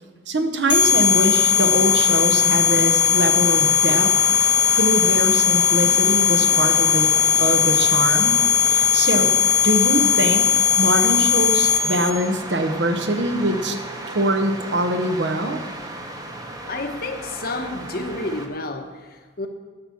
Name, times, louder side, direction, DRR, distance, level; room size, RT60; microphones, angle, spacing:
voice 1, 0.3-4.2 4.7-7.1 7.4-8.4 8.6-9.3 9.6-10.5 10.8-13.8 14.1-15.6, right 1 dB, 65° right, 6 dB, 1.0 m, -23 dB
sound 1, 0.7-12.1, left 8 dB, 75° left, 1.5 m, -18 dB
sound 2, 0.8-18.5, right 1 dB, 20° right, 1.0 m, -34 dB
voice 2, 16.7-19.5, left 2 dB, 50° left, 6 dB, 0.9 m, -30 dB
11.5 x 6.1 x 7.1 m, 1.3 s
head